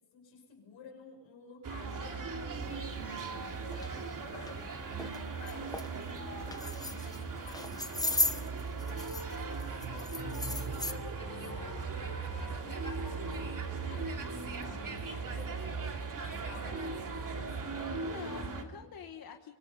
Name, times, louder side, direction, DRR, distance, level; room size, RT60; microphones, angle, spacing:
voice 1, 0.0-18.0, left 5 dB, 90° left, 2 dB, 6.2 m, -54 dB
sound 1, 1.6-18.6, right 4 dB, 45° right, 2.7 m, -38 dB
sound 2, 3.1-3.2 3.7-3.9 4.3-4.5 5.0-5.2 5.5-5.9 6.4-7.2 7.5-9.3 9.6-10.9, left 2 dB, 10° left, 0.9 m, -35 dB
sound 3, 8.7-14.9, right 2 dB, 75° right, 6.6 m, -49 dB
voice 2, 11.2-12.1 18.0-19.5, left 7 dB, 50° left, 4 dB, 1.5 m, -48 dB
24.5 x 24.0 x 5.4 m, 1.0 s
wide cardioid pair, 165°, 45 cm